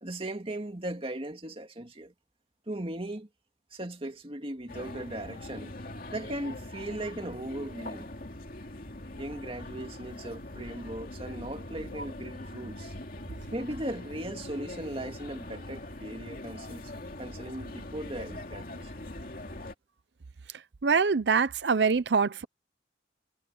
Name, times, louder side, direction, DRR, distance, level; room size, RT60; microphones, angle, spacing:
voice 1, 0.0-2.1 2.7-3.3 3.7-5.7 6.1-8.1 9.2-12.9 13.5-16.9 17.2-18.9, right 1 dB, 30° right, 2.2 m, -38 dB
sound 1, 4.7-19.7, left 1 dB, 55° left, 2.6 m, -42 dB
voice 2, 20.8-22.4, right 5 dB, 70° right, 0.6 m, -24 dB
head